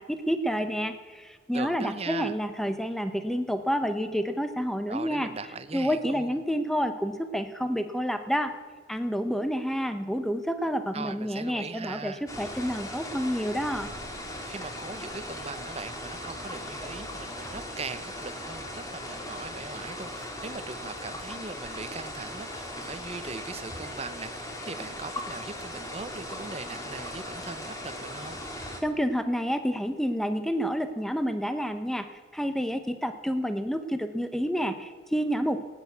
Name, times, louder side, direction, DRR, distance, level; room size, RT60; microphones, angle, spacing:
voice 1, 0.0-5.3 5.7-8.5 8.9-13.9 28.8-35.6, equal, ahead, 9 dB, 0.6 m, -29 dB
voice 2, 1.5-2.4 4.9-6.4 10.9-12.2 14.5-28.4, right 4 dB, 30° right, 12 dB, 0.7 m, -40 dB
sound 1, 12.3-28.8, left 1 dB, 15° left, 1.9 m, -38 dB
18.0 x 9.4 x 8.2 m, 1.5 s
head